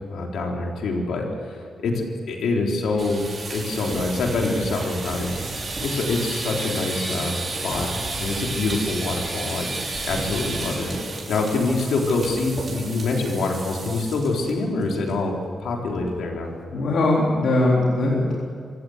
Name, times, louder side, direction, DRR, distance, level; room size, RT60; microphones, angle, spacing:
voice 1, 0.1-1.6 1.8-3.2 3.5-5.4 5.8-7.9 8.2-9.7 10.0-10.9 11.3-15.3 15.6-16.5, left 3 dB, 90° left, 0 dB, 3.9 m, -25 dB
sound 1, 2.9-14.5 14.8-15.1 15.4-15.5 15.9-16.3, right 3 dB, 35° right, 6.0 m, -32 dB
voice 2, 16.7-18.3, left 2 dB, 70° left, -4 dB, 3.9 m, -20 dB
26.5 x 16.0 x 8.1 m, 2.3 s
wide cardioid pair, 140°, 0 cm